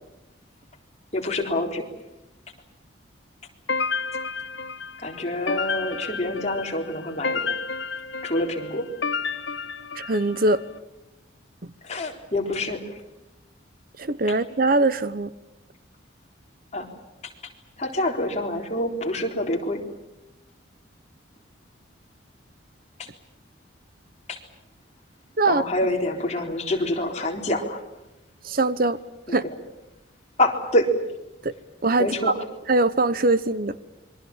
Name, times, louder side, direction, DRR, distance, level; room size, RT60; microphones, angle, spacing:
voice 1, 1.1-1.8 5.0-7.5 8.2-8.9 11.8-12.9 16.7-16.9 17.8-19.8 23.0-23.1 24.3-24.4 25.5-27.8 29.3-29.4 30.4-30.9 32.0-32.4, left 1 dB, 35° left, 2 dB, 3.9 m, -26 dB
sound 1, 3.7-10.6, left 4 dB, 70° left, 1.1 m, -31 dB
voice 2, 9.9-10.6 14.0-15.3 25.4-25.6 28.4-29.0 29.3-29.4 31.4-31.5 31.8-32.3 32.7-33.8, right 2 dB, 50° right, 15 dB, 0.9 m, -22 dB
27.5 x 23.5 x 7.4 m, 0.97 s
head